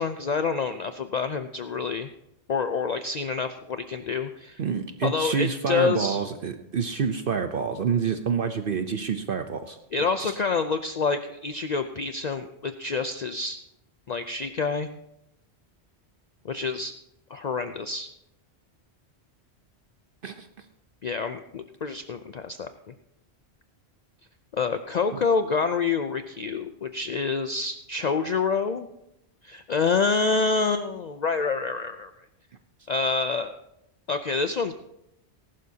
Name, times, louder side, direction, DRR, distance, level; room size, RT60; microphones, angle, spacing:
voice 1, 0.0-2.1 2.5-4.6 5.0-6.2 9.9-13.6 14.1-15.0 16.4-16.9 17.3-18.1 21.0-22.7 24.5-28.9 29.4-32.1 32.9-33.6 34.1-34.7, left 4 dB, 50° left, 9 dB, 0.6 m, -27 dB
voice 2, 4.6-9.8 10.2-10.3 20.2-20.5, right 6 dB, 55° right, 8 dB, 0.9 m, -27 dB
18.5 x 11.5 x 2.8 m, 0.83 s
omnidirectional pair, 1.1 m